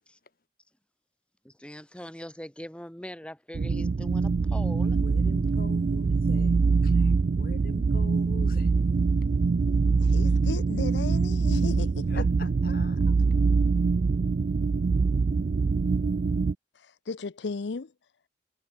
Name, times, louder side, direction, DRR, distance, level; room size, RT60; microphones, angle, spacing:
voice 1, 1.4-5.0, equal, 5° left, 1.9 m, -42 dB
sound 1, 3.5-16.5, right 4 dB, 45° right, 0.3 m, -24 dB
voice 2, 5.0-8.7 12.1-13.2, left 2 dB, 50° left, 1.6 m, -44 dB
voice 3, 10.0-12.5 16.8-17.9, left 4 dB, 75° left, 0.6 m, -36 dB
head